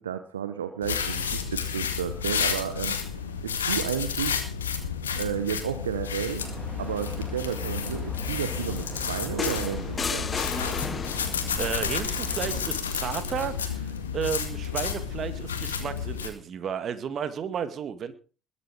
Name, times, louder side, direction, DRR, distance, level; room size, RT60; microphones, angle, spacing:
voice 1, 0.0-3.0 3.4-4.4 5.2-6.5 6.8-10.4, right 9 dB, 80° right, 11 dB, 0.9 m, -32 dB
sound 1, 0.8-16.3, left 7 dB, 85° left, 2.0 m, -31 dB
sound 2, 6.4-12.7, equal, ahead, 2.8 m, -39 dB
sound 3, 9.4-11.5 12.9-13.1, left 5 dB, 35° left, 1.2 m, -33 dB
voice 2, 11.1-18.1, right 7 dB, 50° right, 11 dB, 2.1 m, -33 dB
21.5 x 8.4 x 4.9 m, 0.36 s
figure-of-eight pair, 55°, 0 cm